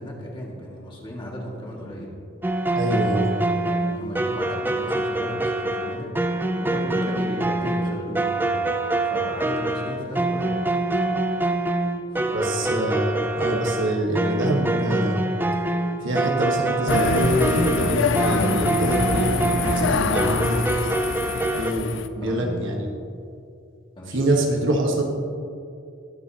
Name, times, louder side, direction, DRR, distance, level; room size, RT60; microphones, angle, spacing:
voice 1, 0.0-2.1 3.6-6.1 6.6-8.6 9.0-10.6 12.1-12.8 22.2-22.8 24.0-24.3 24.6-24.7, equal, 25° left, -3 dB, 2.0 m, -35 dB
sound 1, 2.4-21.7, right 2 dB, 10° right, 0.5 m, -25 dB
voice 2, 2.7-3.3 12.3-15.1 16.0-19.3 19.6-20.6 21.5-22.9 24.1-25.0, right 1 dB, 70° right, 0 dB, 1.4 m, -25 dB
sound 2, 16.9-22.1, left 5 dB, 65° left, 0.5 m, -25 dB
21.0 x 7.1 x 2.9 m, 2.4 s
head